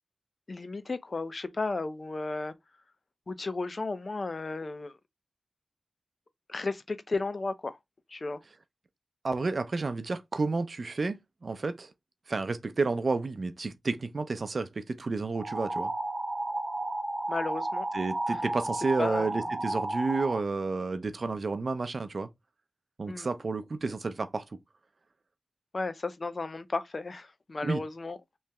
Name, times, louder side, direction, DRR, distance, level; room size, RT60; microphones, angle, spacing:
voice 1, 0.5-2.5 3.3-4.9 6.5-7.8 8.1-8.4 17.3-17.9 18.3-18.4 19.0-19.3 23.1-23.3 25.7-28.2, left 3 dB, 55° left, 0.6 m, -34 dB
voice 2, 9.2-11.9 12.3-15.9 17.9-22.3 23.0-24.4 27.6-27.8, right 3 dB, 60° right, 0.5 m, -31 dB
sound 1, 15.3-20.4, right 2 dB, 40° right, 1.3 m, -33 dB
3.3 x 3.1 x 2.9 m
cardioid pair, 50°, 0 cm